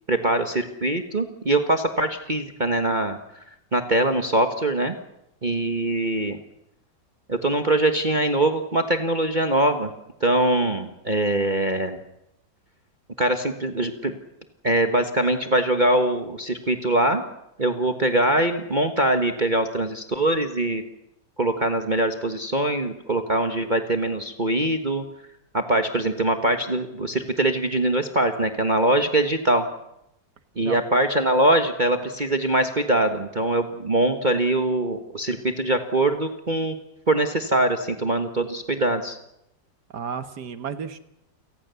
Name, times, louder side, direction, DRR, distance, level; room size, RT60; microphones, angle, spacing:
voice 1, 0.1-3.2 3.7-4.9 5.4-6.4 7.3-9.9 10.2-12.0 13.2-14.1 14.6-17.2 17.6-20.8 21.4-25.0 25.5-29.7 30.6-36.8 37.1-39.2, right 1 dB, 25° right, 6 dB, 1.4 m, -22 dB
voice 2, 39.9-41.0, right 6 dB, 65° right, 11 dB, 1.9 m, -32 dB
29.0 x 18.5 x 7.0 m, 0.82 s
omnidirectional pair, 2.0 m